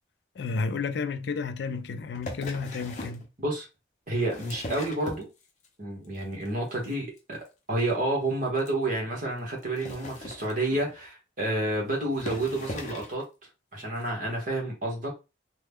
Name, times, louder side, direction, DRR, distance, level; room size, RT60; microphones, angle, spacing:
voice 1, 0.4-3.2, left 4 dB, 70° left, 0.4 m, -31 dB
sound 1, 2.1-3.3 4.1-5.7 6.0-6.5 6.7-6.9 7.2-7.3 7.5-7.6 7.9-8.0 8.6-8.7 9.6-11.0 11.7-11.8 12.1-13.2 14.0-14.1, left 1 dB, 40° left, 0.7 m, -40 dB
voice 2, 4.1-5.3 5.8-7.4 7.7-13.2 13.7-15.1, right 1 dB, 45° right, 1.3 m, -29 dB
3.0 x 2.2 x 3.5 m
head